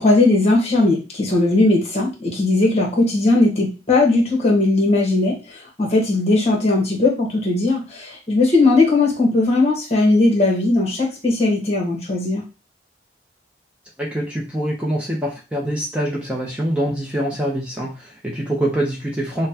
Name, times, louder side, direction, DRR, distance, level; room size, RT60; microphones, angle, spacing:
voice 1, 0.0-12.4, left 2 dB, 35° left, -1 dB, 1.3 m, -18 dB
voice 2, 14.0-19.5, right 1 dB, 5° right, -3 dB, 0.7 m, -24 dB
5.5 x 2.2 x 2.8 m, 0.31 s
head